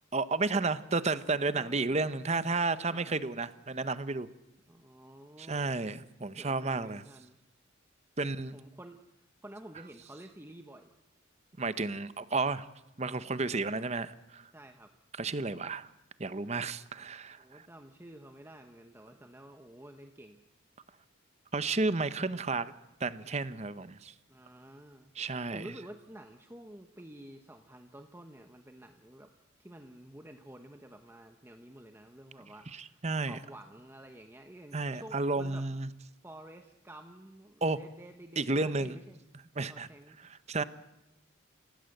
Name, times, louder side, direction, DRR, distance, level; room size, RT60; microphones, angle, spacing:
voice 1, 0.1-4.3 5.4-7.0 8.2-8.6 11.6-12.7 13.0-14.5 15.2-15.9 16.2-17.7 21.5-22.7 23.0-24.1 25.2-25.7 32.7-33.4 34.7-35.9 37.6-37.8 38.4-39.0 39.6-39.9 40.2-40.6, right 3 dB, 35° right, 14 dB, 0.8 m, -32 dB
voice 2, 1.3-2.1 2.5-3.2 4.7-5.8 6.3-7.4 8.5-9.0 9.4-10.9 14.5-15.0 17.4-20.4 24.3-29.3 29.6-35.7 36.2-39.2 39.7-40.2, right 1 dB, 10° right, 5 dB, 1.0 m, -51 dB
29.5 x 16.5 x 7.9 m, 0.95 s
head